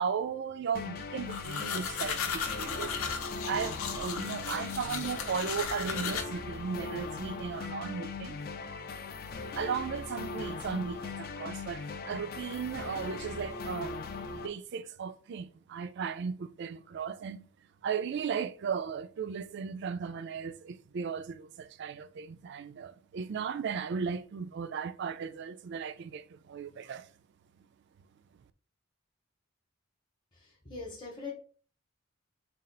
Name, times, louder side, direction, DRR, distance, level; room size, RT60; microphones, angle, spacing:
voice 1, 0.0-2.9 3.5-8.4 9.6-14.0 14.3-17.5 17.8-27.1 27.6-27.7, right 6 dB, 55° right, 0.3 m, -36 dB
sound 1, 0.7-14.5, left 3 dB, 45° left, 0.4 m, -40 dB
sound 2, 1.3-6.2, left 6 dB, 90° left, 0.7 m, -36 dB
voice 2, 30.4-31.3, left 4 dB, 20° left, 0.8 m, -42 dB
4.2 x 2.4 x 3.9 m
head